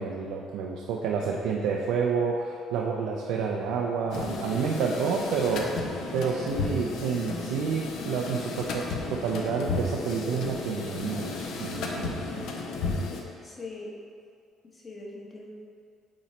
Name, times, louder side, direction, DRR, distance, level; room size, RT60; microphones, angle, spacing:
voice 1, 0.0-5.7 6.1-12.4, right 5 dB, 90° right, -1 dB, 0.4 m, -29 dB
sound 1, 4.1-13.2, left 3 dB, 75° left, 0.7 m, -33 dB
voice 2, 4.1-4.8 11.7-12.3 13.4-14.0 14.7-15.5, left 2 dB, 30° left, -2 dB, 1.1 m, -41 dB
8.5 x 3.1 x 4.2 m, 2.4 s
cardioid pair, 115°, 0 cm